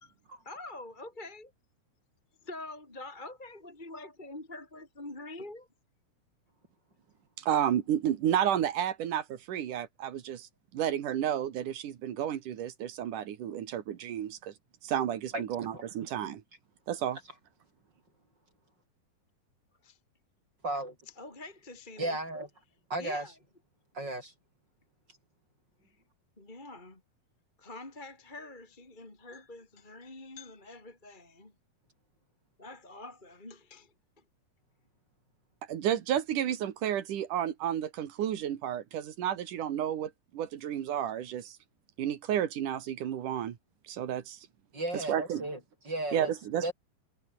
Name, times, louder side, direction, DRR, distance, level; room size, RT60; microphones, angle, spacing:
voice 1, 0.4-1.5 2.4-5.7 19.8-20.0 21.2-22.2 23.0-23.3 25.9-26.0 26.4-27.0 27.6-31.5 32.6-33.9, left 2 dB, 15° left, 3.1 m, -45 dB
voice 2, 7.4-14.5 14.8-16.4 16.9-17.2 35.7-41.6 42.0-43.6 43.8-44.4 45.1-45.5 46.1-46.7, right 10 dB, 65° right, 3.1 m, -31 dB
voice 3, 15.3-15.8 20.6-21.0 22.0-22.5 22.9-23.3 23.9-24.3 44.7-46.3 46.6-46.7, right 1 dB, 25° right, 8.5 m, -35 dB
omnidirectional pair, 4.2 m